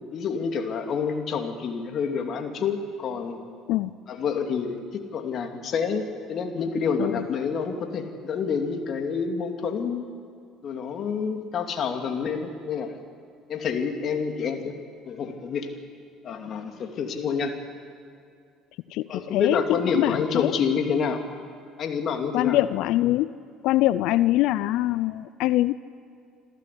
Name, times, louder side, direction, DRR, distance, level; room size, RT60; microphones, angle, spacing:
voice 1, 0.1-3.4 4.1-10.1 10.6-12.9 13.5-14.7 15.0-15.7 16.2-17.5 19.1-21.2 21.8-22.6, left 6 dB, 55° left, 5 dB, 2.6 m, -28 dB
voice 2, 18.9-20.5 22.3-23.3 23.6-25.7, left 15 dB, 70° left, 16 dB, 0.4 m, -23 dB
27.0 x 13.5 x 8.4 m, 2.3 s
hypercardioid pair, 70°, 0 cm